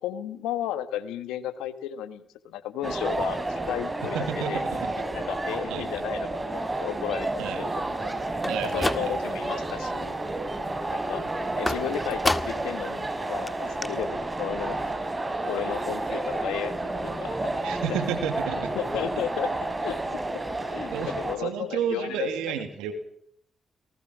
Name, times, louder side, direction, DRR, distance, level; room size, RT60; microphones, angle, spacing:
voice 1, 0.0-4.6 5.1-7.7 8.0-8.2 8.7-10.2 10.9-11.2 11.5-14.8 15.4-16.7 17.0-17.5 17.9-18.0 18.7-19.5 19.8-20.0 20.7-22.3, left 11 dB, 90° left, 12 dB, 1.5 m, -34 dB
sound 1, 2.8-21.4, right 2 dB, 30° right, 5.9 m, -31 dB
voice 2, 4.0-4.9 5.7-6.0 7.4-7.6 8.5-9.1 17.6-18.7 20.9-22.9, right 8 dB, 90° right, 8 dB, 2.6 m, -31 dB
sound 2, 8.3-9.5 9.9-10.4 11.7-12.8 13.1-13.2 13.5-13.6 13.8-13.9, left 1 dB, 15° left, 1.9 m, -30 dB
27.0 x 19.5 x 6.3 m, 0.65 s
supercardioid pair, 45°, 0 cm